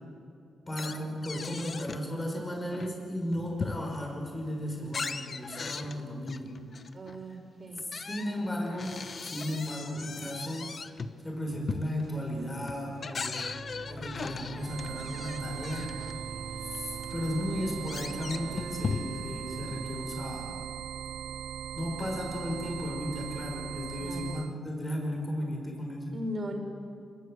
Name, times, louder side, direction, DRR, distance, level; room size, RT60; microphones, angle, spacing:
voice 1, 0.7-6.5 8.1-10.7 11.2-13.4 13.9-15.9 16.7-20.5 21.8-26.2, equal, 20° left, 0 dB, 5.7 m, -35 dB
sound 1, 0.8-2.1 2.5-4.2 4.6-7.2 7.8-16.1 16.7-16.8 17.0-19.4, left 5 dB, 40° left, 1.0 m, -39 dB
voice 2, 6.9-7.9 22.0-22.2 23.9-24.4 26.1-26.6, equal, 35° right, 3 dB, 4.7 m, -38 dB
sound 2, 11.6-19.8, right 2 dB, 65° right, 4.8 m, -48 dB
sound 3, 14.6-24.5, right 9 dB, 85° right, 0.6 m, -39 dB
27.0 x 20.5 x 7.9 m, 2.5 s
cardioid pair, 110°, 0 cm